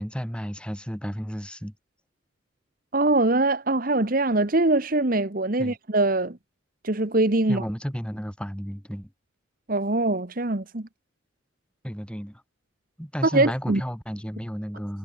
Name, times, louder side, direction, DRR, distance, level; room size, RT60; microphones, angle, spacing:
voice 1, 0.0-1.7 5.6-5.8 7.5-9.1 11.8-12.4 13.0-15.0, equal, 5° left, 7.3 m, -32 dB
voice 2, 2.9-6.4 6.8-7.6 9.7-10.9 13.2-13.8, right 2 dB, 45° right, 1.3 m, -23 dB
head